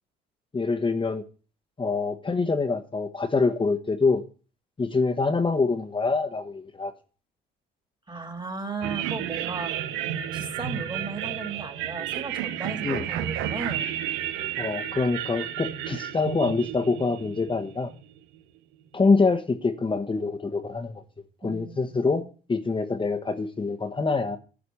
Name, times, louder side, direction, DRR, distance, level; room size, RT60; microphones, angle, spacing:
voice 1, 0.5-1.2 1.8-4.2 4.8-6.9 12.8-13.0 14.6-17.9 18.9-20.9 21.4-22.2 22.5-24.4, left 4 dB, 25° left, 3 dB, 1.3 m, -25 dB
voice 2, 8.1-9.7 10.3-13.9 21.4-22.3, right 4 dB, 20° right, 7 dB, 2.8 m, -36 dB
sound 1, 8.8-18.2, right 11 dB, 75° right, 0.9 m, -32 dB
11.5 x 5.0 x 8.5 m, 0.37 s
hypercardioid pair, 65°, 21 cm